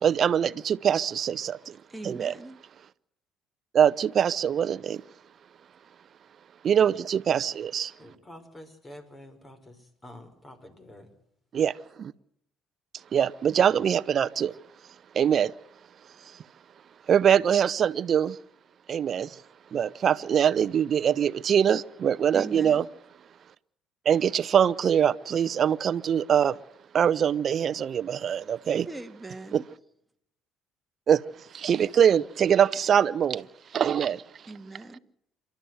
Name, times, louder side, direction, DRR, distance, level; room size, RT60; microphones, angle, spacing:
voice 1, 0.0-1.8 2.0-2.3 3.7-5.0 6.6-7.9 11.5-12.1 13.1-14.5 15.1-15.5 17.1-18.4 18.9-19.4 19.7-22.8 24.0-26.6 26.9-28.9 29.5-29.6 31.1-31.2 31.5-33.5 33.7-34.2, right 8 dB, 50° right, 0.8 m, -23 dB
voice 2, 1.9-2.6 22.3-22.9 28.9-29.6 34.5-35.0, right 2 dB, 10° right, 2.1 m, -40 dB
voice 3, 8.0-11.1, left 1 dB, 25° left, 5.4 m, -48 dB
28.0 x 13.0 x 7.9 m
supercardioid pair, 70°, 0 cm